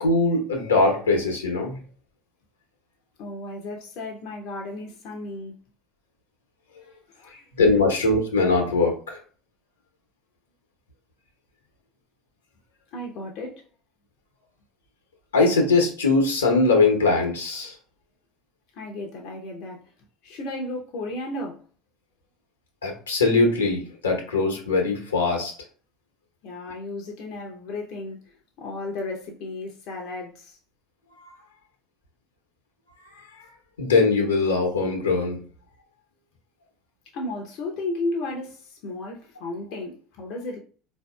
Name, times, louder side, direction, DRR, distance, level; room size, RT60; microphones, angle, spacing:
voice 1, 0.0-1.8 7.5-9.2 15.3-17.7 22.8-25.5 31.2-31.3 33.8-35.4, left 3 dB, 85° left, 0.9 m, -21 dB
voice 2, 3.2-5.6 6.8-7.5 12.9-13.6 18.7-19.8 20.2-21.6 26.4-30.6 37.1-40.6, left 2 dB, 60° left, 0.6 m, -34 dB
4.0 x 2.6 x 2.3 m
hypercardioid pair, 70°, 0 cm